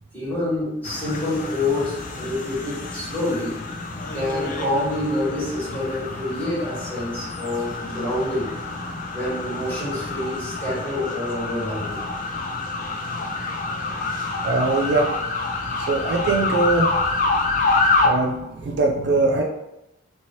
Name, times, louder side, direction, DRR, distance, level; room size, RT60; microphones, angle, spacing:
voice 1, 0.1-3.6 4.1-8.5 9.1-12.1 14.2-14.3, left 1 dB, 10° left, -11 dB, 1.4 m, -27 dB
sound 1, 0.8-18.1, left 3 dB, 40° left, 0.3 m, -27 dB
voice 2, 14.4-15.1 15.8-16.9 18.0-19.4, right 3 dB, 55° right, 2 dB, 0.3 m, -21 dB
2.7 x 2.7 x 2.9 m, 0.91 s
head